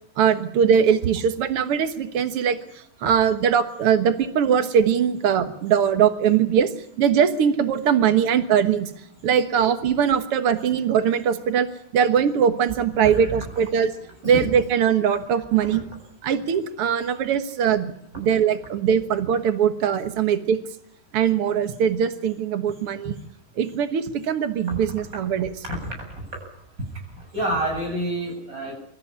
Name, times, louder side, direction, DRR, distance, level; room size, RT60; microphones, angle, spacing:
voice 1, 0.2-6.7 7.0-8.9 9.2-11.7 11.9-13.9 14.2-15.8 16.2-20.6 21.1-23.2 23.6-25.5, right 8 dB, 85° right, 9 dB, 1.2 m, -21 dB
voice 2, 13.0-13.5 14.2-14.5 15.7-15.8 24.6-25.1 25.7-26.3 27.2-28.7, right 1 dB, 20° right, 2 dB, 8.4 m, -29 dB
25.5 x 13.5 x 9.8 m, 0.79 s
omnidirectional pair, 4.7 m